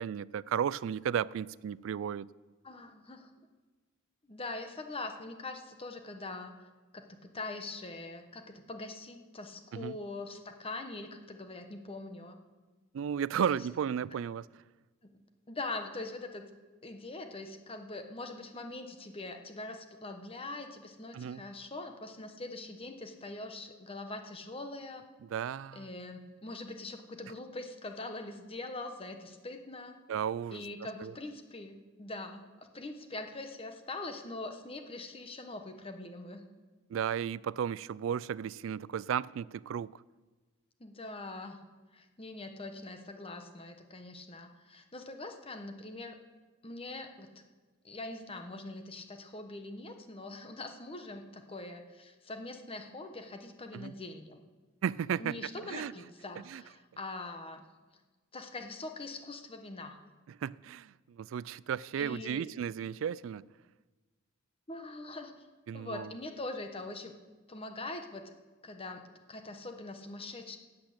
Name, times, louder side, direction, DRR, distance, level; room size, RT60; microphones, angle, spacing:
voice 1, 0.0-2.3 9.7-10.0 12.9-14.6 21.1-21.4 25.2-25.9 30.1-30.7 31.0-31.1 36.9-40.0 53.7-53.9 54.8-55.9 56.5-56.6 60.4-63.4 65.7-66.1, right 8 dB, 80° right, 0.3 m, -34 dB
voice 2, 2.6-3.3 4.3-6.5 6.9-12.4 13.4-13.6 15.0-15.2 15.5-16.4 16.8-25.0 25.7-30.0 30.5-32.5 32.7-36.4 40.8-41.6 41.9-46.2 46.6-47.3 47.8-54.4 55.2-57.6 58.3-60.0 62.0-62.4 64.7-65.5 65.7-67.1 67.5-68.3 68.6-69.0 69.3-70.6, left 2 dB, 30° left, 1.1 m, -43 dB
11.5 x 8.6 x 7.9 m
head